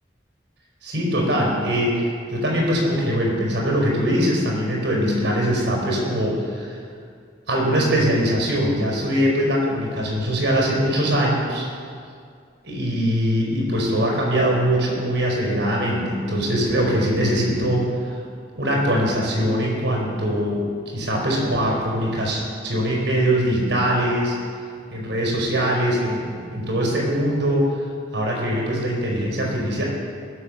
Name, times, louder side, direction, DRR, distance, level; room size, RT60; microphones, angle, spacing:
voice 1, 0.8-6.8 7.5-11.7 12.6-17.9 18.5-24.4 24.9-27.8 28.1-29.8, equal, 80° right, -2 dB, 4.7 m, -22 dB
21.0 x 8.1 x 6.5 m, 2.2 s
head